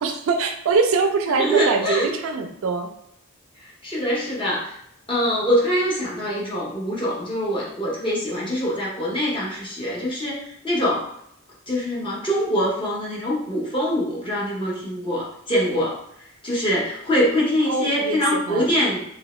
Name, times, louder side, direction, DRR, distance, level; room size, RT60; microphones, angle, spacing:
voice 1, 0.0-2.9 17.7-18.7, right 4 dB, 60° right, 6 dB, 0.3 m, -23 dB
voice 2, 1.4-2.1 3.6-4.7 5.1-11.1 11.7-16.0 16.4-19.0, equal, 25° left, -5 dB, 0.8 m, -24 dB
2.8 x 2.7 x 3.0 m, 0.74 s
head